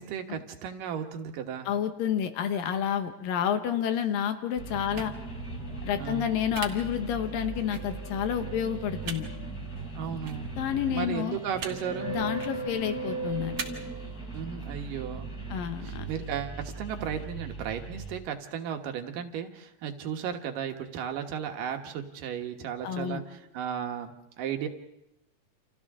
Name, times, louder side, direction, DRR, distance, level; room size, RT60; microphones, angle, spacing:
voice 1, 0.0-1.7 6.0-6.3 9.9-10.5 10.9-12.1 14.3-15.3 15.8-24.1 24.4-24.7, right 8 dB, 70° right, 5 dB, 2.8 m, -35 dB
voice 2, 1.7-5.1 5.8-9.3 10.6-11.4 12.1-13.6 15.5-16.1 22.8-23.2, left 9 dB, 75° left, 8 dB, 2.8 m, -29 dB
sound 1, 4.6-18.1, right 3 dB, 25° left, 6.0 m, -38 dB
sound 2, 4.9-5.1 6.5-6.7 7.7-7.8 9.0-9.2 10.2-10.4 11.5-11.7 12.3-12.5 13.6-13.7, right 6 dB, 45° right, 2.0 m, -36 dB
29.5 x 28.0 x 3.7 m, 0.88 s
omnidirectional pair, 4.0 m